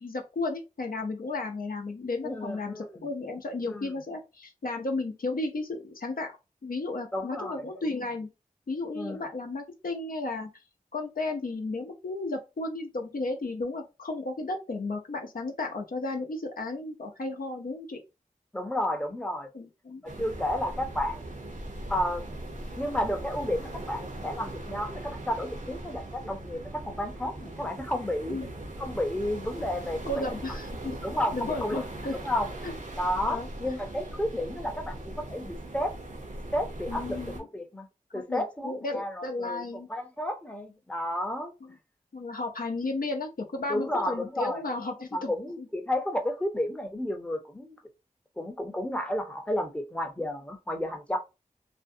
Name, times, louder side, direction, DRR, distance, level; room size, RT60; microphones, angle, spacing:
voice 1, 0.0-6.3 6.6-8.3 8.7-10.5 10.9-18.0 19.5-20.0 28.3-28.5 30.1-31.0 31.3-32.2 32.6-32.7 33.3-33.7 36.9-37.5 38.1-39.9 41.6-41.7 42.1-45.3 45.6-45.7, left 2 dB, 75° left, 0.6 m, -34 dB
voice 2, 2.2-3.1 3.7-3.9 7.1-7.7 7.9-8.0 8.9-9.2 18.5-19.5 20.0-21.2 21.9-22.2 22.8-28.4 28.8-30.4 31.0-31.8 32.1-32.5 33.0-35.9 36.5-37.2 37.5-37.9 38.1-39.6 39.9-41.5 43.7-44.6 45.1-47.8 48.4-51.2, left 1 dB, 10° left, 0.6 m, -32 dB
sound 1, 20.1-37.4, right 1 dB, 60° right, 0.7 m, -40 dB
2.5 x 2.1 x 2.6 m
wide cardioid pair, 45°, 15 cm